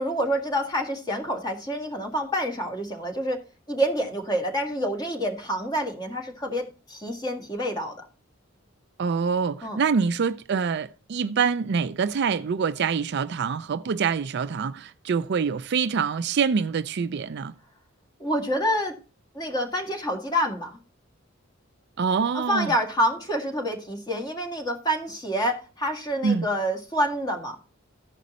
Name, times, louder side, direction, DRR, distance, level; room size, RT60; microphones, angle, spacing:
voice 1, 0.0-3.4 3.7-8.1 9.6-9.8 18.2-19.0 19.3-20.8 22.3-27.6, equal, 20° left, 1.8 m, -27 dB
voice 2, 9.0-17.5 22.0-22.7 26.2-26.5, right 6 dB, 55° right, 0.4 m, -25 dB
14.5 x 5.1 x 4.1 m
head